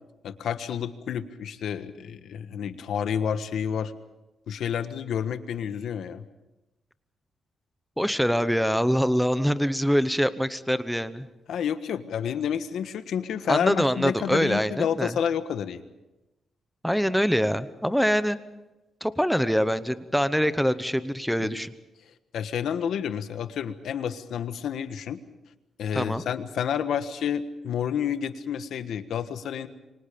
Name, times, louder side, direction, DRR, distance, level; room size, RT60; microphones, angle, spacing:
voice 1, 0.2-3.9 4.5-6.2 11.5-15.8 21.4-21.6 22.3-25.2 25.8-29.7, left 8 dB, 70° left, 10 dB, 1.4 m, -29 dB
voice 2, 8.0-11.3 13.5-15.2 16.8-18.4 19.0-21.7 25.9-26.2, equal, ahead, 12 dB, 0.8 m, -24 dB
28.0 x 24.5 x 5.3 m, 1.0 s
wide cardioid pair, 175°, 0 cm